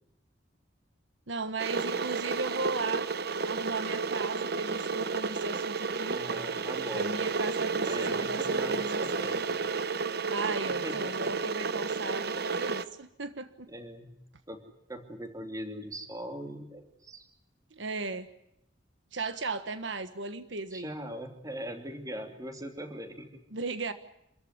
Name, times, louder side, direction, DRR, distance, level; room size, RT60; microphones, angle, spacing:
voice 1, 1.3-3.1 3.4-6.2 6.9-9.3 10.3-13.7 17.7-18.3 19.1-20.9 23.5-23.9, right 3 dB, 75° right, 10 dB, 1.4 m, -36 dB
Water / Boiling, 1.6-12.8, right 4 dB, 55° right, 1.0 m, -31 dB
voice 2, 6.1-7.1 7.8-9.5 10.7-11.1 13.7-14.2 14.5-14.6 14.9-17.3 20.7-23.4, right 1 dB, 20° right, 6 dB, 3.0 m, -41 dB
27.5 x 14.5 x 9.6 m, 0.80 s
head